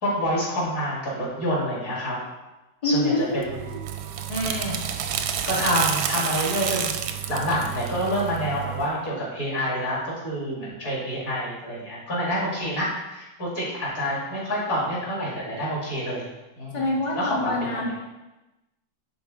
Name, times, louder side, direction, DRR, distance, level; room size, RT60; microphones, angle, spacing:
voice 1, 0.0-2.2 2.8-3.6 4.3-4.8 5.2-16.2 16.6-16.8 17.1-17.9, equal, 50° left, -6 dB, 2.7 m, -27 dB
voice 2, 2.8-3.8 16.7-17.9, left 2 dB, 30° left, -2 dB, 0.6 m, -26 dB
sound 1, 3.4-8.9, right 8 dB, 70° right, 1.0 m, -29 dB
9.2 x 3.9 x 3.7 m, 1.0 s
omnidirectional pair, 2.0 m